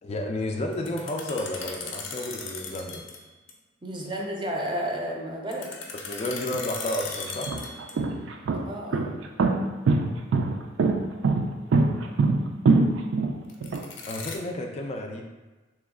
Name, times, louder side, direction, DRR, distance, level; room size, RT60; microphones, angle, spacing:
voice 1, 0.0-3.0 5.9-7.5 14.1-15.2, left 1 dB, 35° left, 2 dB, 0.3 m, -31 dB
sound 1, 0.7-3.2 3.5-3.6 5.5-8.2 13.5-14.4, left 5 dB, 80° left, 0.5 m, -37 dB
voice 2, 3.8-5.7 8.7-9.1, equal, 25° right, 0 dB, 0.5 m, -31 dB
sound 2, 6.5-6.6 7.3-13.8, right 3 dB, 80° right, 0.4 m, -23 dB
3.1 x 2.9 x 3.6 m, 1.2 s
head